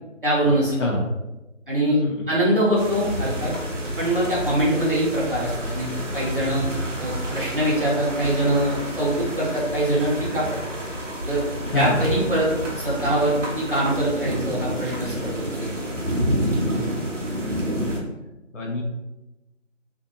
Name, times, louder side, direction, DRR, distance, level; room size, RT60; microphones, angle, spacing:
voice 1, 0.2-0.9 1.7-2.0 2.3-3.5 4.0-6.6 7.0-10.6 11.3-11.4 11.7-15.7, right 1 dB, 45° right, -7 dB, 0.9 m, -23 dB
voice 2, 0.8-1.0 1.9-2.1 11.7-12.0 17.0-17.1 17.7-17.9 18.5-18.8, left 3 dB, 70° left, -1 dB, 0.7 m, -25 dB
sound 1, 2.8-18.0, equal, 70° right, 0.8 m, -29 dB
2.6 x 2.6 x 2.4 m, 1.0 s
figure-of-eight pair, 175°, 39 cm